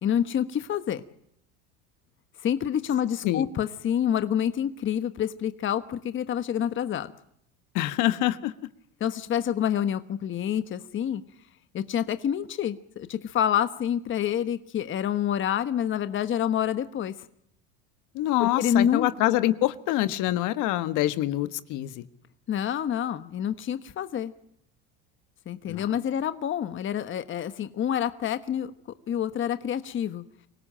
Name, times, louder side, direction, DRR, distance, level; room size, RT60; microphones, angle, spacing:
voice 1, 0.0-1.0 2.4-7.1 9.0-11.2 11.7-17.1 18.4-19.1 22.5-24.3 25.5-28.7 29.1-30.2, left 9 dB, 35° left, 11 dB, 1.3 m, -27 dB
voice 2, 7.7-8.5 18.1-22.0 25.7-25.8, left 15 dB, 60° left, 11 dB, 1.5 m, -25 dB
25.0 x 18.0 x 8.8 m, 0.74 s
supercardioid pair, 110°, 35 cm